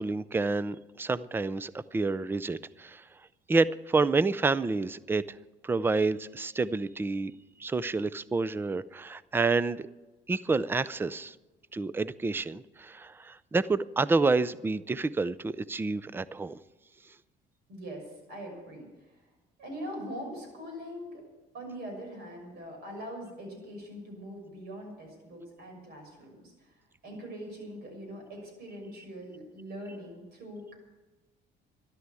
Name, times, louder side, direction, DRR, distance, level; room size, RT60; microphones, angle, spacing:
voice 1, 0.0-3.0 3.5-5.4 5.6-7.3 7.6-9.9 10.3-11.4 11.7-16.6, right 3 dB, 10° right, 17 dB, 0.4 m, -29 dB
voice 2, 17.7-19.2 19.6-21.2 21.5-26.7 27.0-30.7, equal, 65° right, 3 dB, 6.4 m, -42 dB
13.0 x 11.5 x 8.3 m, 1.2 s
cardioid pair, 120°, 18 cm